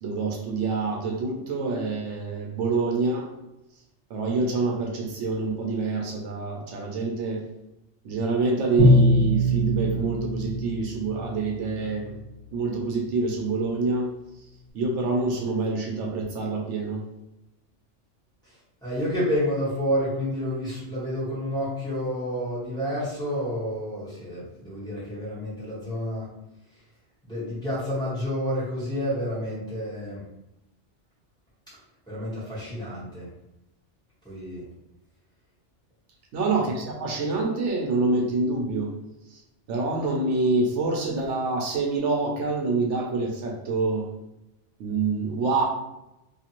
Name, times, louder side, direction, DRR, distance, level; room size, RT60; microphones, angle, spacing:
voice 1, 0.0-3.3 4.1-7.4 8.0-12.2 12.5-14.1 14.7-17.0 36.3-38.9 39.3-39.4 39.7-44.1 44.8-45.6, right 3 dB, 80° right, 0 dB, 0.9 m, -26 dB
Bowed string instrument, 8.8-11.6, equal, 30° left, 0.6 m, -21 dB
voice 2, 18.8-26.3 27.3-30.2 32.1-33.3 34.2-34.6, equal, 5° left, -10 dB, 1.2 m, -29 dB
2.6 x 2.5 x 2.9 m, 0.91 s
omnidirectional pair, 1.2 m